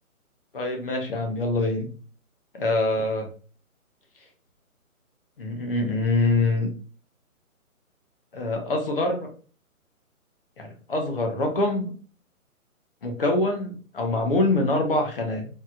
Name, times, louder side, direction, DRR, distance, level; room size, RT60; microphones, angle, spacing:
voice 1, 0.5-1.9 2.5-3.3 5.4-6.7 8.3-9.3 10.6-11.9 13.0-15.5, left 2 dB, 40° left, 3 dB, 1.0 m, -24 dB
4.6 x 3.0 x 2.5 m, 0.39 s
hypercardioid pair, 170°, 44 cm